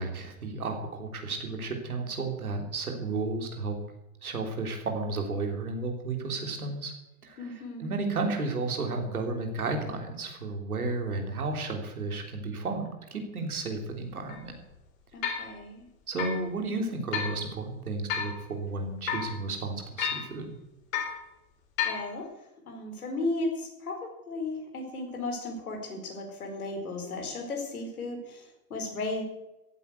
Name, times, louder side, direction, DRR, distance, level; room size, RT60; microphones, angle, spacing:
voice 1, 0.0-3.7 4.2-6.9 7.2-14.5 16.1-20.5, right 3 dB, 90° right, 4 dB, 3.3 m, -33 dB
voice 2, 7.4-7.9 15.1-15.9 21.8-22.3 22.7-24.0 24.3-29.2, left 2 dB, 85° left, 3 dB, 4.5 m, -35 dB
sound 1, 13.6-13.7 14.3-14.4 15.2-15.5 16.2-16.4 17.1-17.4 18.1-18.4 19.1-19.3 20.0-20.3 20.9-21.2 21.8-22.1, left 8 dB, 65° left, 4.1 m, -31 dB
15.0 x 9.3 x 8.2 m, 0.93 s
hypercardioid pair, 90°, 42 cm